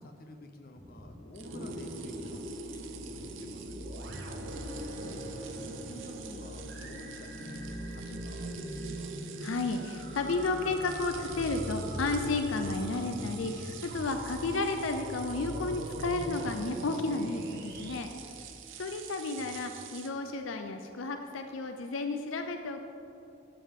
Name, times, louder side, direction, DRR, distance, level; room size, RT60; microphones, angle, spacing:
voice 1, 0.0-3.8 4.5-7.1 7.4-9.2 19.4-19.6, left 1 dB, 50° left, 5 dB, 0.8 m, -49 dB
sound 1, 0.8-2.6 3.0-3.7 4.1-7.2 7.6-9.2 9.4-9.8 10.3-11.5 11.8-12.2, equal, 20° left, 1.0 m, -54 dB
sound 2, 1.3-20.1, right 10 dB, 75° right, 0.7 m, -49 dB
sound 3, 1.4-18.0, equal, 55° right, 1.1 m, -40 dB
voice 2, 9.4-18.4 18.8-22.9, left 3 dB, 80° left, 6 dB, 0.5 m, -32 dB
11.5 x 7.6 x 3.7 m, 2.8 s
head